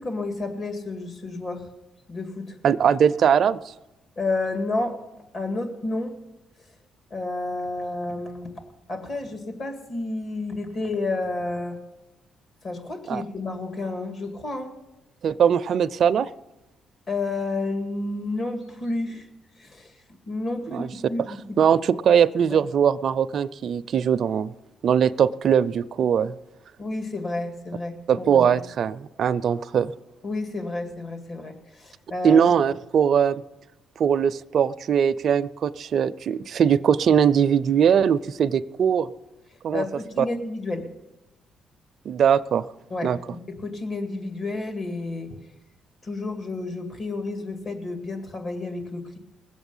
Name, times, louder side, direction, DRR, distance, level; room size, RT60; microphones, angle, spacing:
voice 1, 0.0-1.7 2.1-2.6 4.2-5.0 5.3-6.1 7.1-8.5 8.9-11.8 12.6-14.7 17.1-19.3 19.6-20.0 20.2-21.6 22.5-22.6 26.8-28.5 30.2-32.5 39.7-40.9 42.9-45.3 46.0-49.2, left 2 dB, 45° left, 5 dB, 2.2 m, -30 dB
voice 2, 2.6-3.6 13.1-13.2 15.2-16.3 20.7-20.9 21.6-24.5 24.8-26.3 28.1-29.9 32.2-33.4 34.0-39.1 39.6-39.8 40.2-40.3 42.1-42.7 43.0-43.2, right 8 dB, 60° right, 12 dB, 0.4 m, -21 dB
20.5 x 8.1 x 5.5 m, 0.98 s
cardioid pair, 90°, 0 cm